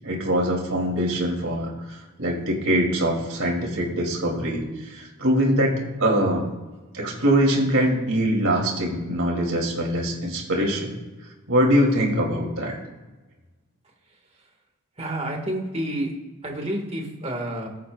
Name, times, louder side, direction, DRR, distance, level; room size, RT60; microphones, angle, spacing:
voice 1, 0.0-6.5 6.9-11.0 11.5-12.8, equal, 65° right, -1 dB, 3.2 m, -23 dB
voice 2, 15.0-16.1 16.4-17.7, right 1 dB, 30° right, 1 dB, 2.0 m, -29 dB
20.5 x 8.2 x 2.5 m, 1.2 s
head